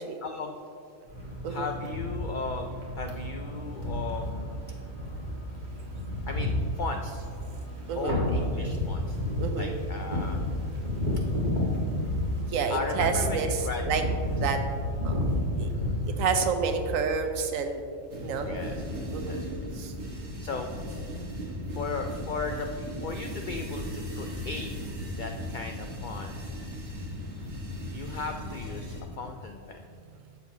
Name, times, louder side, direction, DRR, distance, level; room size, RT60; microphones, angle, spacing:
voice 1, 0.2-0.5 1.5-4.6 6.3-7.3 8.0-9.2 9.6-10.4 12.7-13.8 15.7-16.0 18.4-18.8 19.2-19.6 20.4-20.7 21.7-23.8 24.1-26.6 27.9-29.8, left 4 dB, 75° left, 4 dB, 0.4 m, -37 dB
sound 1, 1.1-17.2, left 1 dB, 35° right, 1.8 m, -31 dB
voice 2, 9.4-9.7 12.1-14.0 14.3-14.6 15.0-15.1 15.6-15.7 16.2-17.8 18.2-18.5 19.1-19.3 19.7-19.9, right 5 dB, 85° right, 6 dB, 1.1 m, -29 dB
sound 2, 18.1-29.0, equal, 60° right, 1.7 m, -37 dB
12.0 x 7.1 x 2.8 m, 2.4 s
omnidirectional pair, 1.4 m